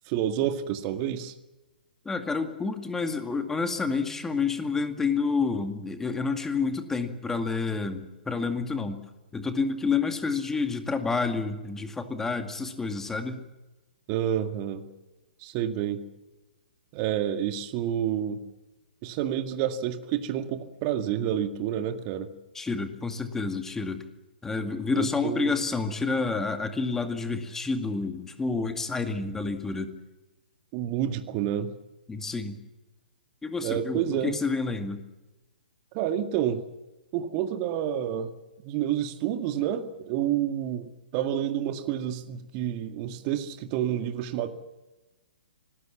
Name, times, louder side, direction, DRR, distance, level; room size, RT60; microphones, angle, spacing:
voice 1, 0.1-1.3 14.1-14.9 15.4-16.0 16.9-18.4 19.0-22.3 24.9-25.6 30.7-31.7 33.6-34.4 35.9-36.6 37.1-38.3 38.6-44.5, right 10 dB, 30° right, 7 dB, 2.0 m, -29 dB
voice 2, 2.1-9.0 9.3-13.5 22.5-24.0 24.4-29.9 32.1-32.6 33.4-35.0, left 4 dB, 10° left, 7 dB, 2.2 m, -29 dB
26.0 x 19.5 x 7.4 m, 1.1 s
figure-of-eight pair, 125°, 5 cm